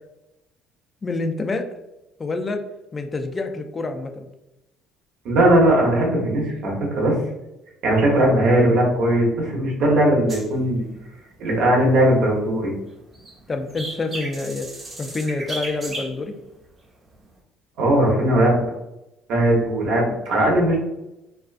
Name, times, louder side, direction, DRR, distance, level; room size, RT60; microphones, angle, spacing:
voice 1, 1.0-1.7 2.2-2.6 2.9-4.3 13.5-14.7 15.0-16.3, left 3 dB, 30° left, 6 dB, 0.3 m, -27 dB
voice 2, 5.2-7.2 7.8-10.8 11.4-12.7 17.8-18.6 19.3-20.8, right 1 dB, 75° right, -2 dB, 0.8 m, -18 dB
sound 1, 10.3-12.5 12.9-16.5 17.1-17.3, right 1 dB, 30° right, 0.8 m, -36 dB
2.4 x 2.3 x 2.4 m, 0.92 s
supercardioid pair, 90°, 0 cm